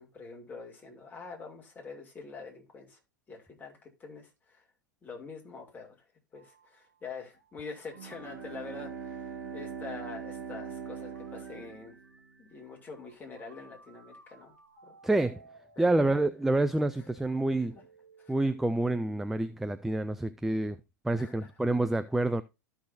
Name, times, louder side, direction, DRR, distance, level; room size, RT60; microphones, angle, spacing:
voice 1, 0.0-3.0 3.3-4.6 5.0-6.0 6.3-11.9 12.4-14.5 14.8-15.0 15.8-16.1 18.2-18.3 21.2-21.5, left 4 dB, 15° left, 2.7 m, -45 dB
sound 1, 6.3-20.2, right 2 dB, 80° right, 3.1 m, -59 dB
Bowed string instrument, 7.9-12.5, right 6 dB, 55° right, 1.5 m, -42 dB
voice 2, 15.0-15.4 15.8-17.8 18.3-20.8 21.0-22.4, right 2 dB, 5° right, 0.3 m, -28 dB
13.5 x 6.0 x 2.6 m
figure-of-eight pair, 95°, 10 cm